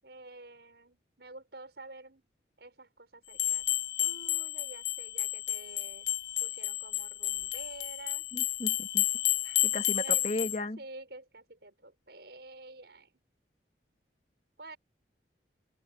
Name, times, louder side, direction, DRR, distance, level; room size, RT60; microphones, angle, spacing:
voice 1, 0.0-2.3 2.6-3.6 4.0-6.1 6.4-8.3 9.4-9.6 10.0-10.3 10.8-13.2 14.6-14.8, right 2 dB, 75° right, 6.0 m, -49 dB
sound 1, 3.3-10.6, left 14 dB, 75° left, 0.5 m, -31 dB
voice 2, 8.3-9.0 9.6-10.8, left 2 dB, 40° left, 2.3 m, -35 dB
open air
head